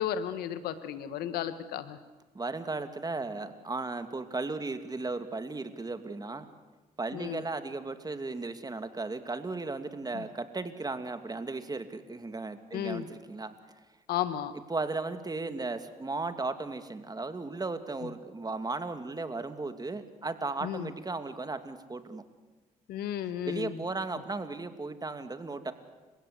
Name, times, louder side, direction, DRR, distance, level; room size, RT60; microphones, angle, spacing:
voice 1, 0.0-2.0 7.1-7.4 10.1-10.2 12.7-13.1 14.1-14.5 20.6-20.9 22.9-23.8, left 10 dB, 85° left, 12 dB, 1.4 m, -33 dB
voice 2, 2.3-6.5 7.0-13.6 14.7-22.2 23.4-25.7, right 3 dB, 25° right, 9 dB, 2.4 m, -36 dB
30.0 x 16.5 x 8.2 m, 1.3 s
supercardioid pair, 65°, 16 cm